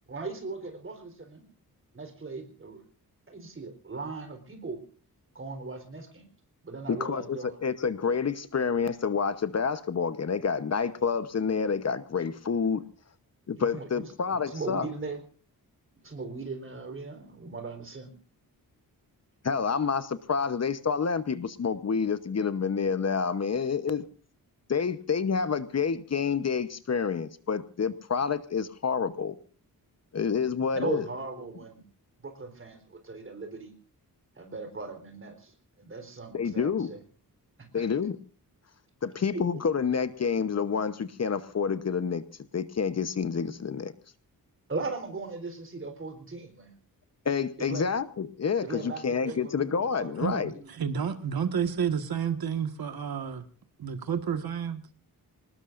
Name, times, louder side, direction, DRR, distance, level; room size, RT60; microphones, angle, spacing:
voice 1, 0.1-1.4 1.9-2.8 3.3-4.8 5.3-6.3 6.6-7.6 13.6-15.2 16.0-18.1 30.7-31.8 32.2-33.7 34.4-37.0 37.6-37.9 39.3-39.4 44.7-46.8 47.6-47.9 48.6-50.7, right 3 dB, 35° right, 6 dB, 4.0 m, -38 dB
voice 2, 7.0-12.8 13.5-14.9 19.4-24.0 24.7-29.4 30.1-31.1 36.3-36.9 37.7-38.2 39.0-42.2 42.5-43.9 47.2-50.5, left 6 dB, 45° left, 13 dB, 1.0 m, -28 dB
voice 3, 50.7-53.4 53.8-54.8, right 7 dB, 75° right, 9 dB, 1.7 m, -30 dB
27.0 x 19.5 x 2.6 m, 0.40 s
wide cardioid pair, 175°, 37 cm